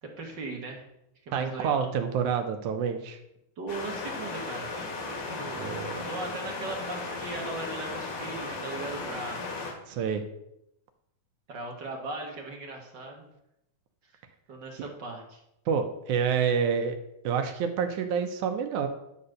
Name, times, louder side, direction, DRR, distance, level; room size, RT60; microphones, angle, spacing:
voice 1, 0.0-0.8 1.2-1.9 3.6-4.7 5.0-5.7 6.0-9.4 11.5-13.3 14.1-14.2 14.5-15.4, right 2 dB, 50° right, 1 dB, 1.5 m, -38 dB
voice 2, 1.3-3.2 5.6-6.1 9.9-10.2 15.7-17.0 17.2-18.9, right 7 dB, 75° right, 6 dB, 2.2 m, -28 dB
sound 1, 3.7-9.7, left 3 dB, 70° left, 3.4 m, -36 dB
10.5 x 4.2 x 6.5 m, 0.81 s
omnidirectional pair, 3.6 m